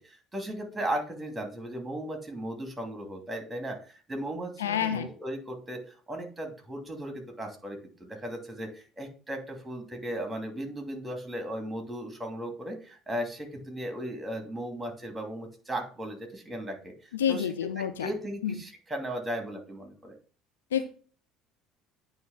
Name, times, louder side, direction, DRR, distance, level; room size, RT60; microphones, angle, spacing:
voice 1, 0.0-16.9 17.3-17.5 17.8-20.2, right 1 dB, 15° right, 4 dB, 2.8 m, -36 dB
voice 2, 4.6-5.1 17.1-18.1 18.4-18.5 20.7-20.9, left 9 dB, 85° left, 9 dB, 0.6 m, -28 dB
9.3 x 3.2 x 6.1 m, 0.41 s
hypercardioid pair, 60°, 0 cm